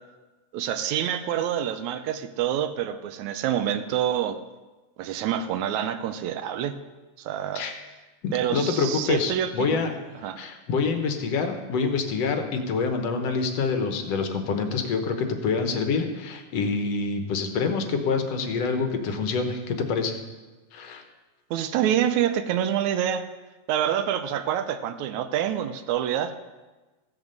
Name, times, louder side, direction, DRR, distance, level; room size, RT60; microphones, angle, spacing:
voice 1, 0.5-4.4 5.0-6.8 7.2-7.7 8.3-9.8 10.2-10.4 21.5-23.3 23.7-26.4, right 10 dB, 90° right, 11 dB, 2.1 m, -27 dB
voice 2, 8.2-10.0 10.4-20.2 20.7-21.0, left 4 dB, 65° left, 6 dB, 2.0 m, -26 dB
15.0 x 8.1 x 6.6 m, 1.2 s
omnidirectional pair, 3.3 m